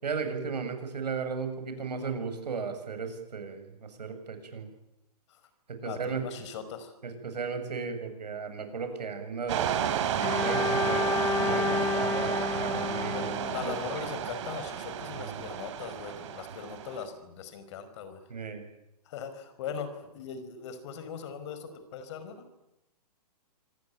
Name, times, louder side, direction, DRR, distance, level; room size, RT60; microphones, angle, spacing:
voice 1, 0.0-4.7 5.8-6.2 7.0-14.0 15.0-15.5 18.3-18.7, right 5 dB, 80° right, 7 dB, 7.3 m, -36 dB
voice 2, 5.8-6.9 13.1-18.2 19.0-22.4, left 6 dB, 45° left, 11 dB, 5.2 m, -40 dB
sound 1, 9.5-17.0, right 9 dB, 45° right, 4.1 m, -32 dB
Bowed string instrument, 10.2-14.3, left 5 dB, 15° left, 2.1 m, -31 dB
27.0 x 20.0 x 9.4 m, 0.88 s
hypercardioid pair, 150°, 21 cm